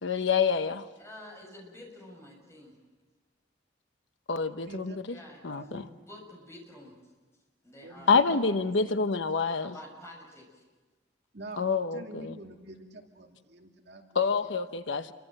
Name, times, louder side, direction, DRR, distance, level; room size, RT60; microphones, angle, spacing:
voice 1, 0.0-0.9 4.3-5.2 5.4-5.9 8.1-9.7 11.6-12.4 14.1-15.1, left 5 dB, 80° left, 10 dB, 1.0 m, -27 dB
voice 2, 1.0-2.7 5.1-5.4 6.0-7.0 7.6-8.6 9.6-10.6, left 1 dB, 15° left, 0 dB, 7.0 m, -49 dB
voice 3, 4.4-5.0 5.5-5.9 7.8-9.2 11.3-14.3, right 2 dB, 60° right, 2 dB, 2.4 m, -47 dB
28.0 x 24.0 x 7.7 m, 1.3 s
head